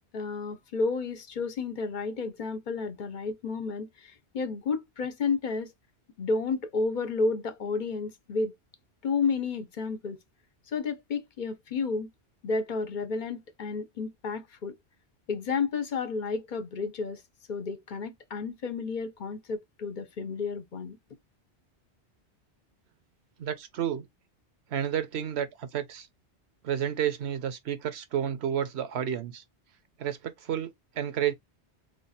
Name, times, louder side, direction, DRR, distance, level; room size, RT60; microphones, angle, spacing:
voice 1, 0.0-5.7 6.2-8.5 9.0-10.2 10.7-12.1 12.4-14.7 15.3-17.2 17.5-21.0, left 4 dB, 50° left, 0.8 m, -31 dB
voice 2, 23.4-24.0 24.7-26.1 26.6-29.4 30.0-30.7 31.0-31.3, right 9 dB, 75° right, 1.0 m, -31 dB
3.2 x 2.4 x 4.1 m
omnidirectional pair, 1.1 m